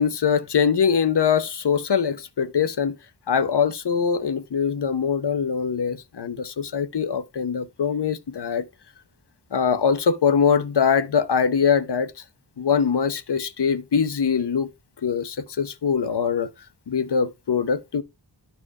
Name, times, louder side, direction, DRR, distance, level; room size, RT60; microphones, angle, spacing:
voice 1, 0.0-3.0 3.3-8.6 9.5-12.1 12.6-14.7 15.0-16.5 16.9-18.0, left 6 dB, 75° left, 1.0 m, -22 dB
11.5 x 4.6 x 4.8 m
wide cardioid pair, 90°, 41 cm